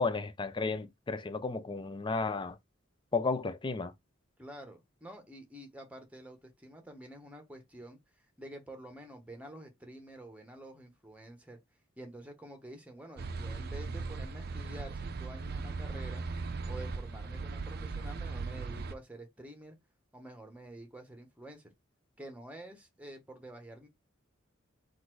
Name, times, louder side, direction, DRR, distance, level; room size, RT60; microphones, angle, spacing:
voice 1, 0.0-2.6 3.1-3.9, left 4 dB, 25° left, 0.5 m, -33 dB
voice 2, 4.4-8.0 8.4-11.6 12.0-16.2 16.7-19.8 20.1-21.7 22.2-23.9, right 1 dB, 5° right, 1.1 m, -48 dB
sound 1, 13.2-18.9, right 4 dB, 55° right, 0.5 m, -38 dB
4.1 x 2.6 x 4.6 m
head